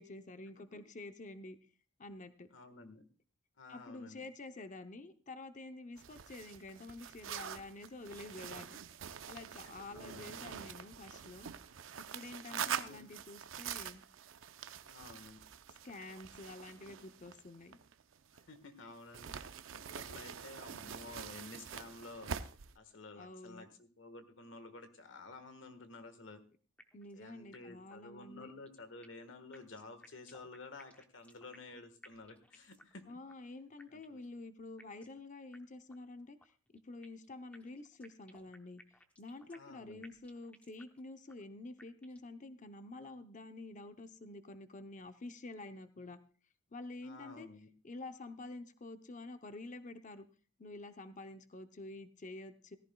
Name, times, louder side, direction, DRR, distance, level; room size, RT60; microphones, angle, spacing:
voice 1, 0.0-1.6 2.0-2.5 3.7-8.8 9.3-11.5 12.0-14.0 15.8-17.8 23.2-23.7 26.9-28.5 33.1-36.4 36.7-38.8 39.2-46.2 46.7-47.5 47.8-50.2 50.6-52.8, left 2 dB, 40° left, 9 dB, 0.7 m, -49 dB
voice 2, 2.5-3.0 3.6-4.2 9.2-9.3 9.6-10.3 12.5-13.1 14.8-15.4 18.3-22.3 22.7-26.4 27.1-33.2 33.9-34.2 39.5-40.1 47.0-47.7, left 3 dB, 70° left, 9 dB, 1.5 m, -52 dB
sound 1, 6.0-18.6 19.1-22.7, right 8 dB, 80° right, 0.6 m, -45 dB
sound 2, 26.8-27.2 27.5-27.6 27.9-28.0 28.4-29.3 29.5-31.8 32.0-33.0 33.3-33.4 33.8-34.3 34.8-35.2 35.5-35.6 35.9-36.0 36.4-37.3 37.5-39.8 40.0-41.0 41.3-41.4 41.8-42.3, left 1 dB, 5° left, 0.8 m, -60 dB
17.0 x 14.5 x 2.3 m, 0.38 s
head